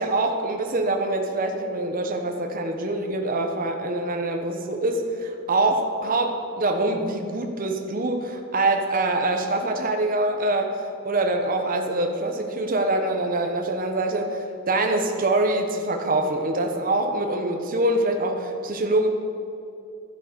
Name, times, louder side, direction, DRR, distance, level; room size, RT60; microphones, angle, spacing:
voice 1, 0.0-10.8 11.0-19.1, right 2 dB, 40° right, 4 dB, 1.2 m, -24 dB
12.0 x 9.7 x 6.9 m, 2.6 s
head